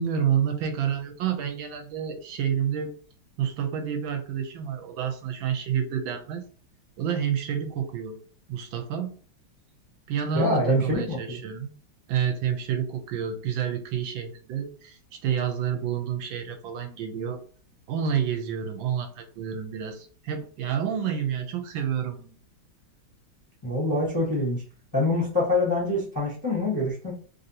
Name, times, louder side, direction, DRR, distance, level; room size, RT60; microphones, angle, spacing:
voice 1, 0.0-2.9 3.4-6.4 7.0-8.2 8.5-9.1 10.1-11.7 12.1-17.4 17.9-22.4, right 8 dB, 75° right, 5 dB, 1.3 m, -29 dB
voice 2, 10.3-11.4 23.6-24.6 24.9-27.1, left 2 dB, 20° left, -5 dB, 0.6 m, -25 dB
3.3 x 2.6 x 2.7 m, 0.42 s
omnidirectional pair, 2.3 m